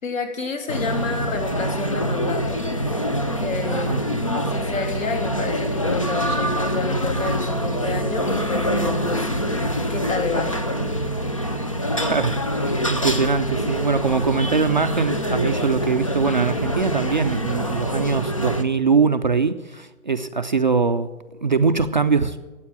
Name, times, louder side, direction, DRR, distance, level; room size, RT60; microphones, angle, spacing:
voice 1, 0.0-2.7 3.4-3.9 4.3-9.3 9.9-10.6, left 4 dB, 65° left, 4 dB, 3.3 m, -29 dB
sound 1, 0.7-18.6, equal, 25° left, 0.4 m, -25 dB
voice 2, 3.7-4.0 12.0-21.1 21.4-22.4, right 5 dB, 35° right, 8 dB, 0.4 m, -22 dB
14.0 x 8.2 x 8.7 m, 1.1 s
hypercardioid pair, 160°, 42 cm